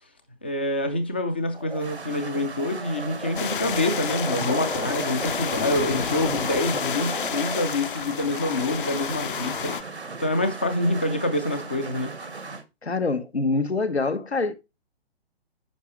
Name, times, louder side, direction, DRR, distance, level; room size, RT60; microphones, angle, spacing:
voice 1, 0.4-12.1, left 1 dB, 10° left, 0.3 m, -26 dB
sound 1, 1.5-12.6, right 4 dB, 90° right, 1.2 m, -35 dB
sound 2, 3.4-9.8, left 8 dB, 55° left, 0.8 m, -30 dB
voice 2, 12.8-14.5, left 3 dB, 85° left, 1.1 m, -25 dB
10.0 x 5.1 x 3.1 m
figure-of-eight pair, 130°, 31 cm